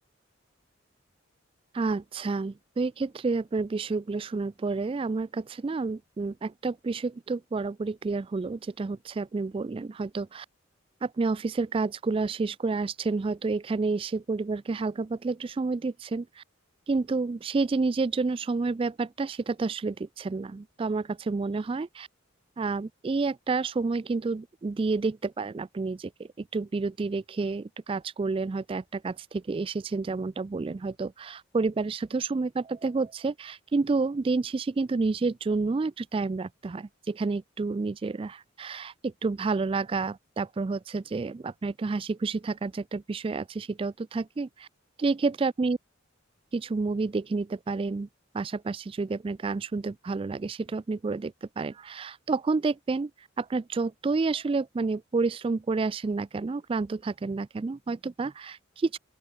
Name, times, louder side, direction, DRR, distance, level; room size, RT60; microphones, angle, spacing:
voice 1, 1.7-10.5 11.0-16.4 16.9-22.1 22.6-44.7 45.0-45.8 46.5-48.1 48.3-53.1 53.4-59.0, right 3 dB, 25° right, 0.3 m, -29 dB
open air
head